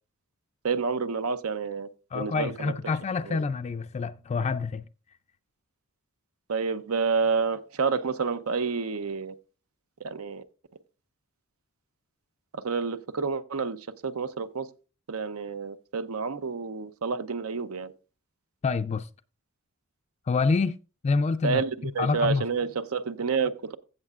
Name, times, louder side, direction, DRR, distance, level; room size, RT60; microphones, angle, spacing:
voice 1, 0.6-1.9 2.1-2.7 3.3-3.4 6.5-9.3 10.0-10.4 12.5-14.7 15.1-17.9 21.4-23.8, right 5 dB, 85° right, 0.7 m, -29 dB
voice 2, 2.1-4.9 18.6-19.1 20.3-20.8 21.0-21.6 22.0-22.5, left 4 dB, 30° left, 0.3 m, -27 dB
16.5 x 6.5 x 2.4 m
head